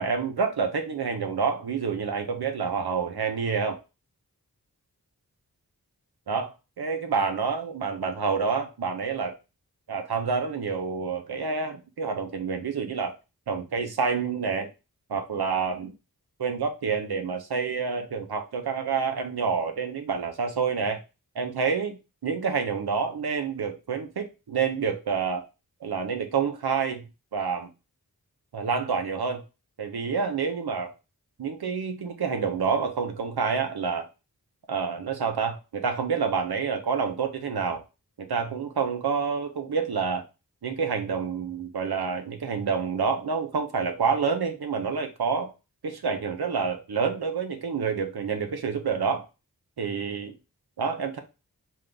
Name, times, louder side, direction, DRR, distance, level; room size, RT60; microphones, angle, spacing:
voice 1, 0.0-3.8 6.3-9.3 9.9-13.1 13.5-14.7 15.1-15.9 16.4-21.0 21.3-25.4 25.8-27.1 27.3-27.7 28.5-29.4 29.8-30.9 31.4-34.1 34.7-37.8 38.2-40.2 40.6-45.5 45.8-49.3 49.8-50.4 50.8-51.2, right 5 dB, 85° right, 0.7 m, -28 dB
3.8 x 2.6 x 3.4 m
wide cardioid pair, 40°, 37 cm